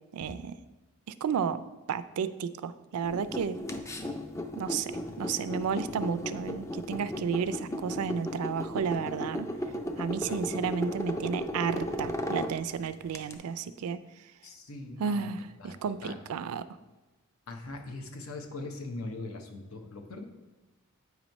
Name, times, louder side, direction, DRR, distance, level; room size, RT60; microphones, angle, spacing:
voice 1, 0.1-0.6 1.2-1.6 1.9-3.6 4.6-9.5 10.0-14.0 15.0-16.7, right 6 dB, 90° right, 13 dB, 0.4 m, -32 dB
sound 1, 3.0-13.4, equal, 15° left, 0.3 m, -35 dB
voice 2, 14.4-15.3 15.6-16.2 17.5-20.2, left 2 dB, 70° left, 4 dB, 0.8 m, -41 dB
8.1 x 3.0 x 5.2 m, 1.1 s
head